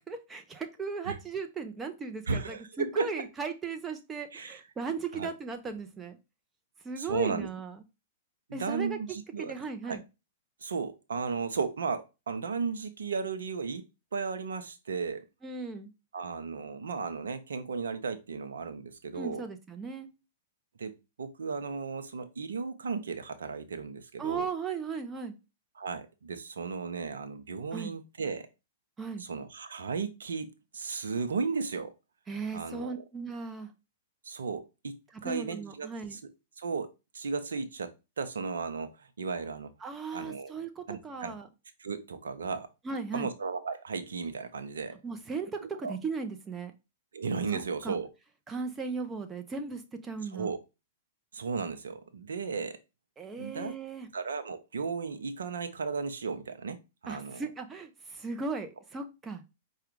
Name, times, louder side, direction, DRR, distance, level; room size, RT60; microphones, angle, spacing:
voice 1, 0.0-6.2 6.8-7.8 8.5-9.0 9.4-10.0 15.4-15.9 19.1-20.1 24.2-25.3 27.7-27.9 29.0-29.2 32.3-33.7 35.2-36.2 39.8-41.5 42.8-43.3 45.0-46.7 47.5-48.0 48.5-50.5 53.2-54.1 57.1-59.4, right 4 dB, 20° right, 6 dB, 0.8 m, -37 dB
voice 2, 2.3-3.1 4.3-4.6 5.1-5.3 7.0-7.5 8.5-9.5 9.8-10.0 10.6-13.8 14.1-15.2 16.1-19.4 20.8-20.9 21.2-24.5 25.8-28.5 29.2-31.9 32.5-33.0 34.2-36.2 36.6-36.9 37.1-39.7 40.1-40.5 40.9-41.4 41.8-42.7 43.1-45.0 45.6-45.9 47.1-48.1 50.3-50.6 51.3-52.8 53.4-53.7 54.1-56.8 57.0-57.4, right 5 dB, 80° right, 9 dB, 0.6 m, -35 dB
4.8 x 2.4 x 4.6 m, 0.27 s
hypercardioid pair, 110°, 0 cm